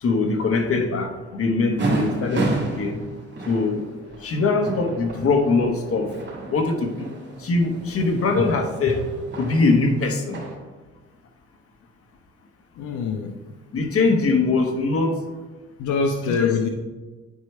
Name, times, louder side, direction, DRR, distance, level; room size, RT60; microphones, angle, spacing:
voice 1, 0.0-3.0 3.5-3.9 4.2-6.1 6.5-7.1 7.4-9.1 9.4-10.4 13.7-15.2 16.4-16.6, left 3 dB, 50° left, 4 dB, 1.2 m, -22 dB
sound 1, 1.8-10.6, right 2 dB, 35° right, 2.2 m, -31 dB
voice 2, 12.8-13.3 15.8-16.7, left 4 dB, 80° left, 4 dB, 0.7 m, -24 dB
10.0 x 4.6 x 3.2 m, 1.3 s
cardioid pair, 90°, 30 cm